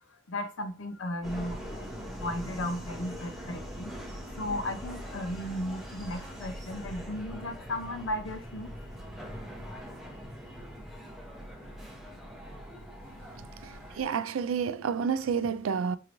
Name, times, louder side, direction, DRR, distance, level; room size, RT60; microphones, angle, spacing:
voice 1, 0.3-4.0 4.3-8.7 13.7-13.9, left 1 dB, 75° left, 0.7 m, -35 dB
Subway metro underground, 1.2-14.0, equal, ahead, 0.8 m, -42 dB
voice 2, 13.6-16.0, right 6 dB, 80° right, 0.4 m, -30 dB
4.6 x 3.0 x 2.5 m
head